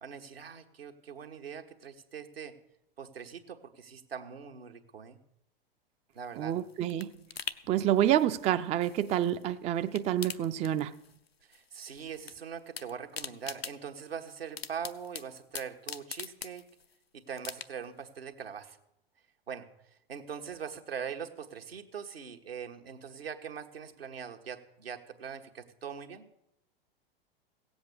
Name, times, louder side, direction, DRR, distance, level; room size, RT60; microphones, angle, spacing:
voice 1, 0.0-2.5 3.0-5.2 6.1-6.5 11.5-16.7 17.1-18.8 19.5-19.7 20.1-26.3, right 7 dB, 80° right, 1.3 m, -42 dB
sound 1, 6.2-9.5 9.8-11.3 11.5-12.3 12.6-17.0 17.4-18.0 18.4-18.5, left 6 dB, 85° left, 0.7 m, -43 dB
voice 2, 6.4-7.1 7.7-10.9, right 11 dB, 20° right, 0.4 m, -28 dB
17.0 x 7.9 x 6.8 m
figure-of-eight pair, 90°, 30 cm